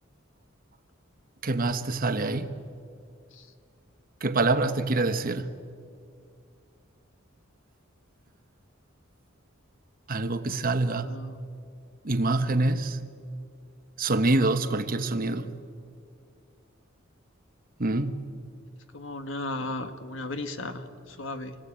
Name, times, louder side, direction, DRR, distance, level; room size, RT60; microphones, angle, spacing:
voice 1, 1.4-2.6 4.2-5.5 10.1-11.2 12.0-13.0 14.0-15.5 17.8-18.3, right 2 dB, 45° right, 1.1 m, -26 dB
voice 2, 11.0-11.4 18.9-21.6, left 2 dB, 70° left, 1.6 m, -35 dB
26.5 x 18.5 x 8.7 m
head